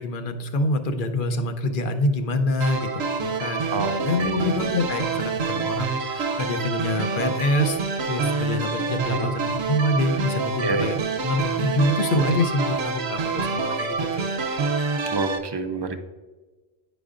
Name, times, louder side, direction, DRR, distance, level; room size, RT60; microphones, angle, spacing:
voice 1, 0.0-7.8 8.0-14.4, left 2 dB, 60° left, 7 dB, 0.8 m, -26 dB
sound 1, 2.6-15.4, right 5 dB, 90° right, 0.9 m, -27 dB
voice 2, 15.1-16.0, right 3 dB, 40° right, 7 dB, 0.4 m, -27 dB
10.5 x 5.0 x 2.4 m, 1.3 s
omnidirectional pair, 1.0 m